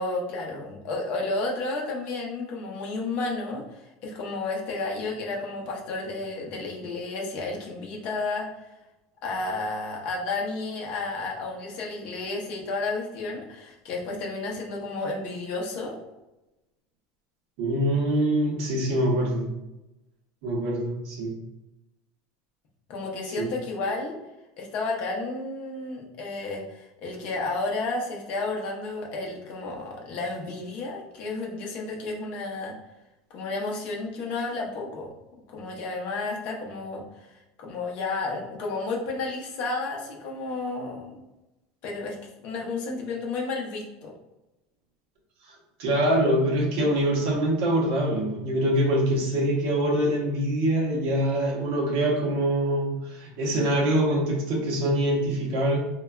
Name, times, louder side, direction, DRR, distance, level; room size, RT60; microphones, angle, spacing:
voice 1, 0.0-8.5 9.2-16.0 22.9-24.1 24.6-32.7 33.3-35.1 35.5-37.3 37.6-41.2 41.8-42.2 42.4-44.1, left 3 dB, 40° left, -1 dB, 0.6 m, -32 dB
voice 2, 17.6-19.5 20.4-21.3 23.3-23.5 45.5-55.8, right 1 dB, 55° right, -3 dB, 0.7 m, -24 dB
3.2 x 2.2 x 2.3 m, 0.97 s
supercardioid pair, 175°, 3 cm